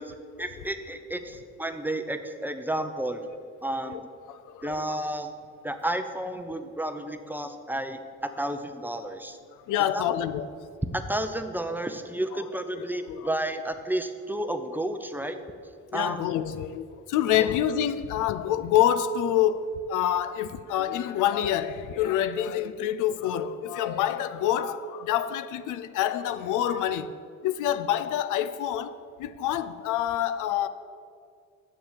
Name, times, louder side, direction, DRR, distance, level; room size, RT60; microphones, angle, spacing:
voice 1, 0.0-3.3 3.6-4.0 4.6-5.3 5.6-9.4 9.9-10.0 10.8-15.4 15.9-16.2, right 1 dB, 5° right, 0.6 m, -31 dB
voice 2, 4.3-5.0 9.5-10.5 12.3-12.5 13.1-13.3 15.9-27.1 27.4-30.7, left 10 dB, 85° left, 0.5 m, -27 dB
7.1 x 7.0 x 7.5 m
cardioid pair, 90°, 30 cm